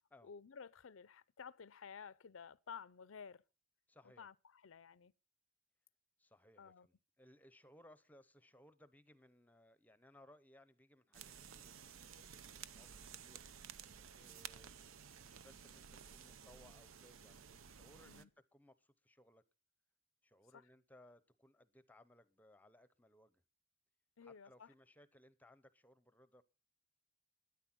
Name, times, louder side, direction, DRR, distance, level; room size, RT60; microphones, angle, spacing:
voice 1, 0.2-3.4 4.0-5.1 6.6-6.9 18.1-18.3 20.5-20.7 24.2-24.7, left 6 dB, 80° left, 0.6 m, -54 dB
voice 2, 3.9-4.3 6.2-14.8 15.2-19.4 20.2-23.4 24.2-26.4, left 1 dB, 10° left, 0.7 m, -65 dB
sound 1, 11.1-18.2, right 8 dB, 90° right, 0.7 m, -54 dB
12.5 x 10.0 x 6.0 m
head